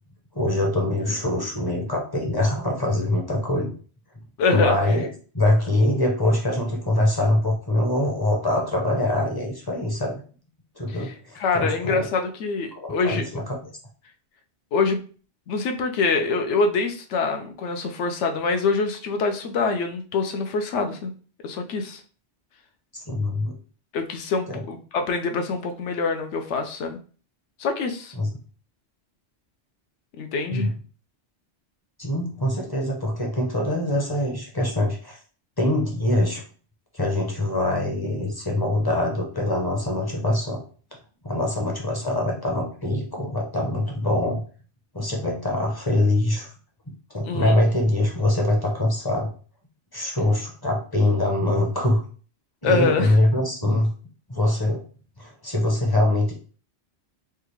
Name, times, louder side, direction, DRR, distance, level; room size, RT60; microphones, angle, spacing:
voice 1, 0.3-3.7 4.5-5.1 5.3-10.2 10.8-12.1 12.8-13.6 22.9-23.5 24.5-24.6 28.2-28.3 30.5-30.7 32.0-35.2 35.6-36.4 36.9-40.6 41.2-44.4 44.9-46.5 47.1-49.3 49.9-52.0 52.6-53.9 54.3-54.8 55.2-56.3, left 1 dB, 25° left, 0 dB, 0.6 m, -23 dB
voice 2, 4.4-4.8 10.9-13.2 14.7-15.0 15.5-21.1 21.4-22.0 23.9-27.0 27.6-28.1 30.2-30.7 47.2-47.6 52.6-53.2, left 4 dB, 85° left, 6 dB, 0.9 m, -25 dB
3.4 x 2.3 x 3.0 m, 0.40 s
omnidirectional pair, 1.2 m